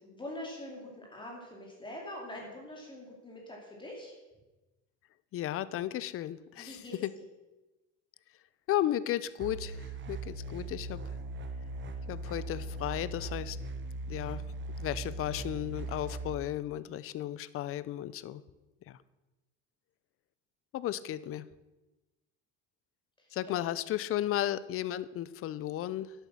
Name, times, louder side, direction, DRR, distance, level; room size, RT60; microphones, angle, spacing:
voice 1, 0.1-4.2 6.5-7.1 23.2-23.6, left 1 dB, 15° left, -2 dB, 2.6 m, -44 dB
voice 2, 5.3-7.1 8.7-11.0 12.1-13.6 14.1-14.4 14.8-18.4 18.9-19.0 20.7-21.5 23.3-26.1, left 13 dB, 40° left, 17 dB, 0.6 m, -34 dB
sound 1, 9.4-16.3, right 2 dB, 35° right, 1.0 m, -39 dB
11.0 x 8.1 x 6.2 m, 1.1 s
cardioid pair, 125°, 34 cm